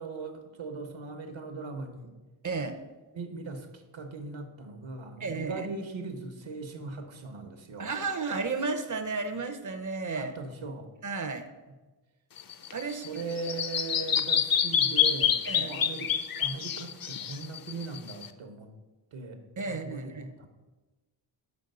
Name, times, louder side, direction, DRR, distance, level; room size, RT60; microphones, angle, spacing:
voice 1, 0.0-2.1 3.1-7.9 10.1-10.9 13.0-18.7 19.1-20.5, right 3 dB, 70° right, 6 dB, 0.9 m, -39 dB
voice 2, 2.4-2.8 5.2-5.7 7.8-10.3 11.0-11.5 12.7-13.2 15.5-15.8 19.6-20.3, right 4 dB, 40° right, 8 dB, 0.5 m, -33 dB
Bird vocalization bird call bird song, 12.4-18.3, left 8 dB, 50° left, 0.5 m, -27 dB
5.2 x 5.2 x 6.5 m, 1.2 s
wide cardioid pair, 145°, 48 cm